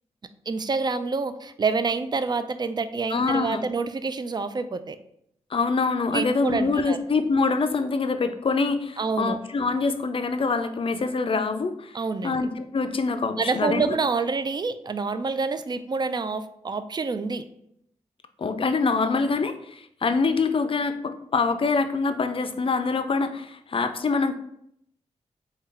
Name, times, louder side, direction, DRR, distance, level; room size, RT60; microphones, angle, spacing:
voice 1, 0.5-5.0 6.1-7.0 9.0-9.4 11.9-12.5 13.4-17.4, right 4 dB, 35° right, 12 dB, 0.4 m, -27 dB
voice 2, 3.1-3.6 5.5-12.0 12.2-14.0 18.4-24.3, left 4 dB, 45° left, 9 dB, 0.5 m, -25 dB
3.7 x 2.3 x 4.2 m, 0.73 s
cardioid pair, 50°, 13 cm